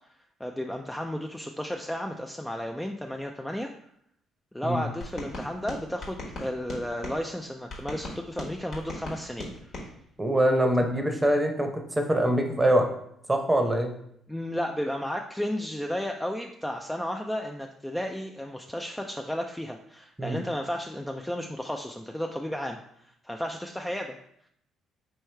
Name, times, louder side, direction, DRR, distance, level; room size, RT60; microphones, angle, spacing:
voice 1, 0.4-3.7 4.5-9.8 14.3-24.2, equal, 5° left, 3 dB, 0.3 m, -33 dB
sound 1, 5.0-7.2 7.7-9.9, left 1 dB, 60° left, 1.3 m, -39 dB
voice 2, 10.2-12.9 13.3-14.0 20.2-20.4, right 1 dB, 15° right, 4 dB, 0.8 m, -24 dB
4.5 x 3.1 x 3.3 m, 0.71 s
supercardioid pair, 70°, 0 cm